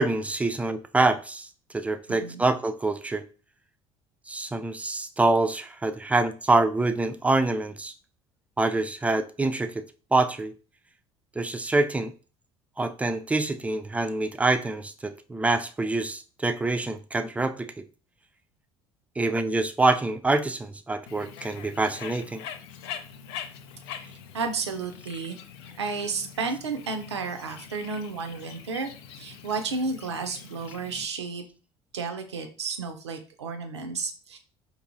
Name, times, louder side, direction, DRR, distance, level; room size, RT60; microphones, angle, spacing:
voice 1, 0.0-3.2 4.3-7.9 8.6-9.8 10.1-10.5 11.4-12.1 12.8-17.8 19.2-22.4, right 2 dB, 10° right, 9 dB, 0.4 m, -26 dB
voice 2, 2.1-2.5 24.0-25.4 25.8-28.9 29.2-31.4 31.9-34.4, right 4 dB, 85° right, 6 dB, 0.5 m, -32 dB
Bird, 21.1-31.1, left 8 dB, 70° left, 0.4 m, -43 dB
4.6 x 2.6 x 2.6 m, 0.37 s
figure-of-eight pair, 60°, 14 cm